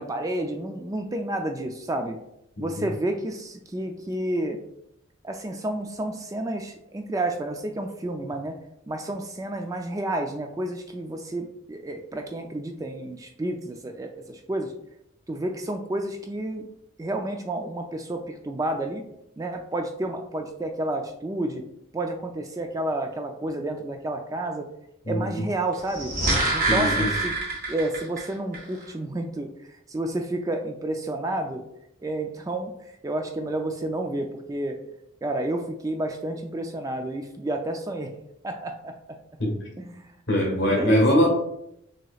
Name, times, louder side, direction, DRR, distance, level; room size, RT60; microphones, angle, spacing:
voice 1, 0.0-2.2 2.6-4.6 5.2-8.5 8.9-14.7 15.3-16.6 17.0-19.0 19.4-21.6 21.9-24.7 25.1-26.1 26.5-27.4 27.7-29.5 29.9-31.6 32.0-32.7 33.0-34.8 35.2-38.1 38.4-39.0 39.8-40.1 40.6-41.3, right 1 dB, 15° right, 5 dB, 0.3 m, -30 dB
voice 2, 25.0-25.4 26.7-27.1 39.4-39.6 40.3-41.3, left 1 dB, 65° left, -2 dB, 1.4 m, -22 dB
sound 1, 25.8-28.2 28.5-28.6, right 2 dB, 45° right, 1.3 m, -25 dB
6.1 x 2.8 x 2.3 m, 0.79 s
head